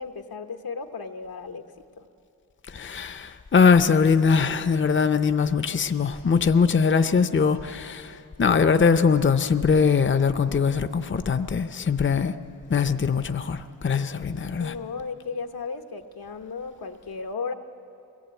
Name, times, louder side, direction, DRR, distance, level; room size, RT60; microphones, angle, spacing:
voice 1, 0.0-1.6 2.0-2.1 14.6-17.5, left 5 dB, 85° left, 6 dB, 1.1 m, -35 dB
voice 2, 2.7-12.3 12.7-14.7, left 5 dB, 35° left, 11 dB, 0.6 m, -21 dB
22.5 x 18.0 x 8.2 m, 2.7 s
wide cardioid pair, 95°, 35 cm